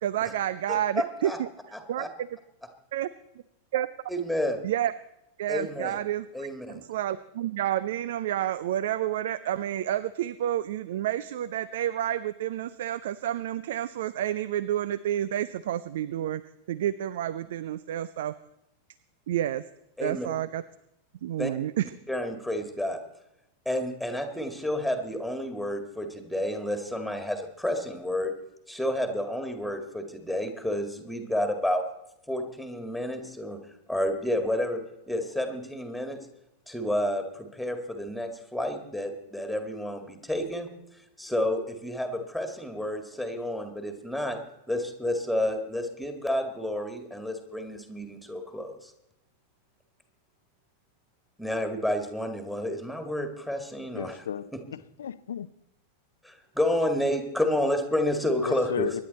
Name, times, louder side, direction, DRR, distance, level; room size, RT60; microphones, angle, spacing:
voice 1, 0.0-1.5 1.9-2.0 2.9-3.1 3.7-3.9 4.6-4.9 5.4-6.5 6.7-16.4 16.7-18.4 19.3-19.6 20.0-20.6 21.2-21.9, right 12 dB, 55° right, 18 dB, 0.4 m, -29 dB
voice 2, 0.7-1.4 1.7-2.1 4.1-4.6 5.5-6.0 6.3-6.8 20.0-20.3 21.4-21.5 22.1-23.0 23.7-28.3 28.7-31.8 32.3-33.6 33.9-34.8 35.1-36.2 36.7-40.7 41.2-44.4 44.7-48.9 51.4-54.2 54.5-54.6 56.2-59.0, left 1 dB, ahead, 6 dB, 2.1 m, -30 dB
voice 3, 53.9-55.5 58.4-59.0, left 8 dB, 65° left, 16 dB, 0.6 m, -34 dB
24.5 x 10.5 x 4.2 m, 0.85 s
figure-of-eight pair, 90°, 0 cm